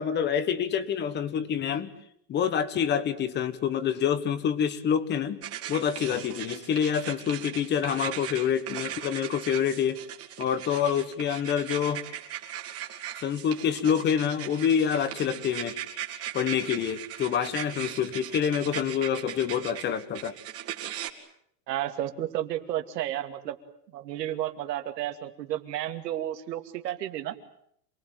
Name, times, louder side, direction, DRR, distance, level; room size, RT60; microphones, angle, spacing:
voice 1, 0.0-1.9 2.3-5.4 5.7-10.0 10.4-12.0 13.2-15.8 16.3-20.4, left 8 dB, 20° left, 14 dB, 1.4 m, -27 dB
jose garcia - foley - pencil writing, 5.4-21.1, right 11 dB, 30° right, 2.7 m, -39 dB
voice 2, 21.7-23.6 23.9-27.3, right 12 dB, 80° right, 7 dB, 2.7 m, -32 dB
27.5 x 20.0 x 9.3 m, 0.69 s
supercardioid pair, 165°, 48 cm